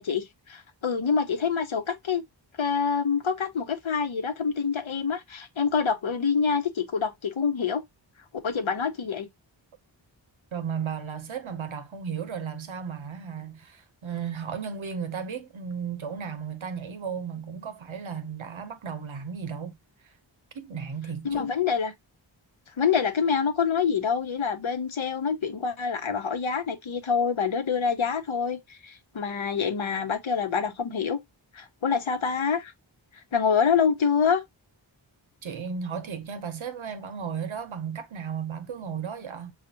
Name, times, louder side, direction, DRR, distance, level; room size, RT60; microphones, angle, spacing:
voice 1, 0.0-2.2 2.6-7.8 8.4-9.3 21.2-21.9 22.8-31.2 31.5-32.7 33.3-34.4, left 6 dB, 80° left, 1.0 m, -26 dB
voice 2, 10.5-19.8 20.5-21.5 35.4-39.5, right 7 dB, 90° right, 0.9 m, -34 dB
6.4 x 2.4 x 2.8 m
wide cardioid pair, 50°, 46 cm